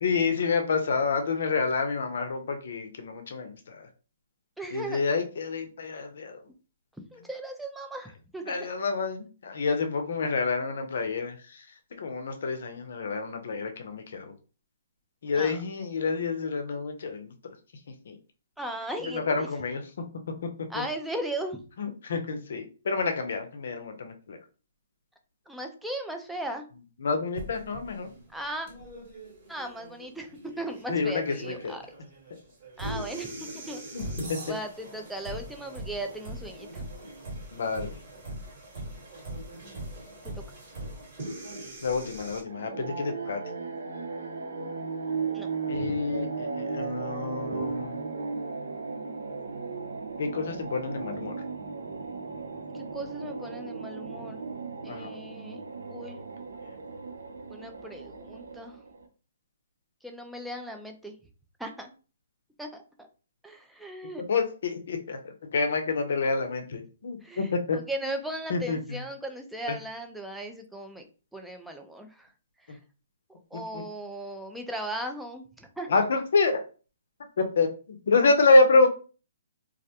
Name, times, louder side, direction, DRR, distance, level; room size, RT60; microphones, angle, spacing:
voice 1, 0.0-3.9 4.7-6.4 8.5-11.6 12.0-14.3 15.2-17.3 18.1-18.2 19.0-19.8 20.7-20.8 21.8-24.4 27.0-28.1 30.9-31.8 33.9-34.0 34.3-34.4 37.5-37.9 41.8-43.4 45.7-48.0 50.2-51.3 54.9-55.2 64.2-65.2 65.5-67.8 68.5-69.0 73.7-73.8 75.9-76.6 77.4-78.9, left 3 dB, 65° left, 5 dB, 0.5 m, -27 dB
voice 2, 4.6-5.0 7.1-8.7 15.3-15.6 18.6-19.5 20.7-21.6 25.5-26.6 28.3-28.7 29.5-31.8 32.8-33.8 34.5-36.8 40.2-40.4 45.3-46.0 47.5-47.6 52.7-54.4 54.8-56.2 57.5-58.8 60.0-61.2 61.6-61.9 62.6-63.1 63.4-64.2 67.2-71.0 71.3-72.3 72.7-72.8 73.5-75.9, right 1 dB, ahead, 4 dB, 0.4 m, -37 dB
sound 1, 27.3-42.4, right 1 dB, 45° right, 1.4 m, -41 dB
sound 2, 42.5-59.0, right 4 dB, 80° right, 0.5 m, -36 dB
2.3 x 2.1 x 2.7 m, 0.36 s
hypercardioid pair, 140°, 0 cm